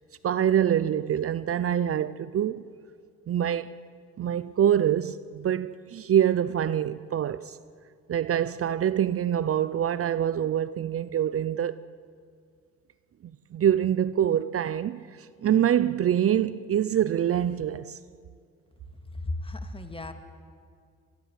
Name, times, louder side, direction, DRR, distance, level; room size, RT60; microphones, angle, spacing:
voice 1, 0.2-2.6 3.3-3.7 4.2-7.6 8.1-11.8 13.2-18.0, right 10 dB, 50° right, 0.6 m, -25 dB
voice 2, 19.1-20.1, left 2 dB, 20° left, 2.1 m, -34 dB
24.0 x 19.5 x 8.2 m
cardioid pair, 90°, 30 cm